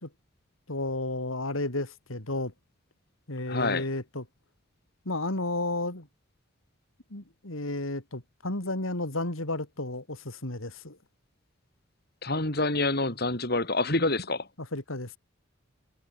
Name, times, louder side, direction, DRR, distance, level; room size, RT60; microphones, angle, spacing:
voice 1, 0.7-2.5 3.3-4.2 5.1-6.1 7.1-11.0 14.6-15.2, left 2 dB, 85° left, 4.0 m, -32 dB
voice 2, 3.5-3.8 12.2-14.5, left 2 dB, 50° left, 5.5 m, -27 dB
head